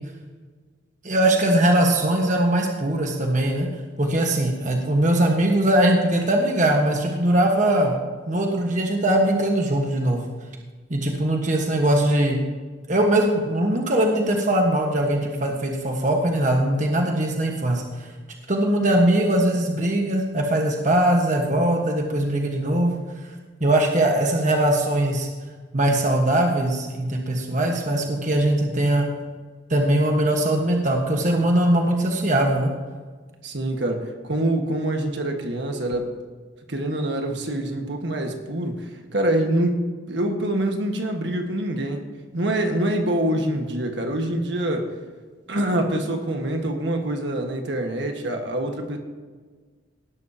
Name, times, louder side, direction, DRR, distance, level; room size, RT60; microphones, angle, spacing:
voice 1, 1.0-3.7 4.0-7.9 8.3-10.2 10.9-12.4 12.9-18.1 18.5-23.0 23.6-25.3 25.7-29.1 29.7-32.7, right 1 dB, 40° right, 1 dB, 1.4 m, -21 dB
voice 2, 33.4-36.1 36.7-39.8 40.1-42.0 42.3-44.9 45.5-49.0, right 1 dB, 65° right, 3 dB, 1.7 m, -25 dB
18.0 x 12.0 x 2.9 m, 1.5 s
head